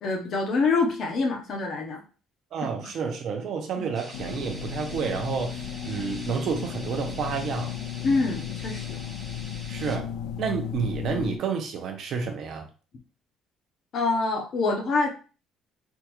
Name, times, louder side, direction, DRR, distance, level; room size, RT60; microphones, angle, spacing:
voice 1, 0.0-2.0 2.8-2.9 3.8-3.9 8.0-9.0 13.9-15.1, left 3 dB, 40° left, 2 dB, 0.7 m, -26 dB
voice 2, 2.5-7.7 9.7-10.1 10.4-12.7, right 6 dB, 50° right, 3 dB, 0.6 m, -30 dB
sound 1, 4.0-10.0, right 1 dB, 10° right, 0.6 m, -45 dB
sound 2, 4.1-11.4, left 9 dB, 75° left, 0.4 m, -35 dB
3.5 x 2.3 x 2.9 m, 0.36 s
cardioid pair, 170°, 0 cm